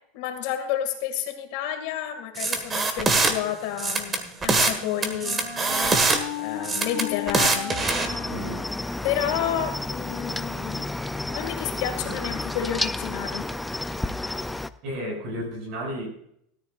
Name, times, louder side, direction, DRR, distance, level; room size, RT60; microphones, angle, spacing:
voice 1, 0.1-5.4 6.4-7.8 9.0-10.9 11.3-13.5, left 11 dB, 55° left, 6 dB, 2.1 m, -30 dB
sound 1, 2.4-3.3 3.8-4.8 5.0-6.2 6.6-8.1, right 3 dB, 15° right, 1.5 m, -23 dB
Wind instrument woodwind instrument, 3.8-9.7, left 7 dB, 20° left, 5.0 m, -36 dB
Cricket, 7.8-14.7, left 2 dB, 5° left, 0.4 m, -31 dB
voice 2, 8.3-8.6 12.0-12.2 14.8-16.1, equal, 40° right, 2 dB, 5.9 m, -33 dB
17.0 x 13.5 x 2.4 m, 0.70 s
supercardioid pair, 165°, 0 cm